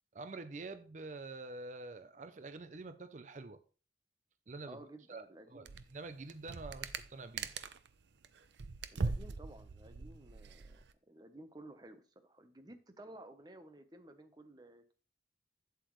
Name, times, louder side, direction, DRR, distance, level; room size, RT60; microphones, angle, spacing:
voice 1, 0.1-3.6 4.5-4.8 5.1-5.7 5.9-7.5, right 3 dB, 45° right, 0.5 m, -47 dB
voice 2, 4.7-5.7 8.9-14.9, right 1 dB, 25° right, 0.9 m, -54 dB
sound 1, 5.7-5.9 6.2-7.9 8.2-10.9, right 4 dB, 85° right, 0.6 m, -40 dB
8.2 x 7.8 x 3.1 m
head